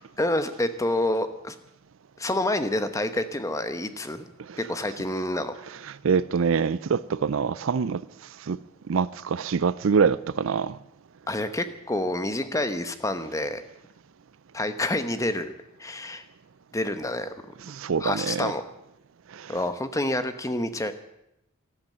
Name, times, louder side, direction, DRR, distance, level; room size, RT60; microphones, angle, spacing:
voice 1, 0.2-1.6 2.2-4.3 4.6-5.5 11.3-13.6 14.5-15.5 15.8-16.2 16.7-17.3 18.0-18.6 19.5-20.9, left 1 dB, 15° left, 0.9 m, -28 dB
voice 2, 5.7-8.0 8.5-8.6 8.9-10.8 17.6-18.5 19.3-19.6, right 6 dB, 65° right, 0.4 m, -25 dB
13.5 x 12.5 x 7.4 m
head